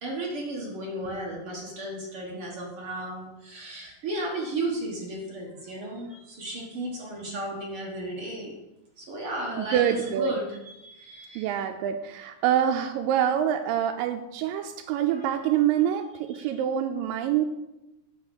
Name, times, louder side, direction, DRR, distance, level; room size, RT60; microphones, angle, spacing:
voice 1, 0.0-8.5 9.0-11.5 15.1-15.3 16.3-16.5, right 1 dB, 50° right, -2 dB, 1.8 m, -34 dB
voice 2, 9.6-10.4 11.4-17.4, right 10 dB, 85° right, 4 dB, 2.3 m, -26 dB
8.7 x 4.9 x 7.0 m, 0.96 s
omnidirectional pair, 3.9 m